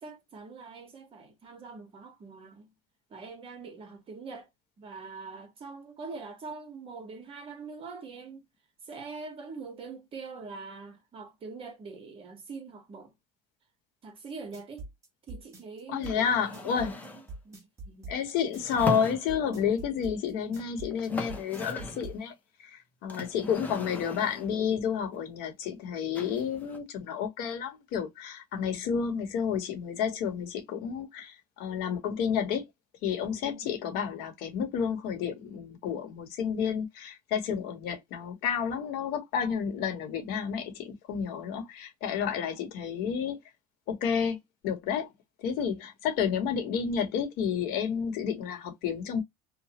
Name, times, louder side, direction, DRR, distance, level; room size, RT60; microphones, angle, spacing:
voice 1, 0.0-2.7 3.1-4.5 4.8-8.4 8.8-13.1 14.0-14.9 15.3-18.1 33.4-33.8, right 4 dB, 35° right, 1.2 m, -44 dB
sound 1, 14.3-22.2, right 2 dB, 20° right, 1.4 m, -43 dB
voice 2, 15.9-17.0 18.1-22.3 22.6-32.7 33.0-43.4 43.9-44.4 44.6-45.1 45.4-49.2, left 7 dB, 70° left, 1.1 m, -30 dB
sound 2, 16.0-17.3 18.5-19.7 20.6-20.7 20.9-22.1 23.1-24.6 26.2-26.8, left 1 dB, 10° left, 0.7 m, -38 dB
3.0 x 2.2 x 2.9 m
cardioid pair, 135°, 16 cm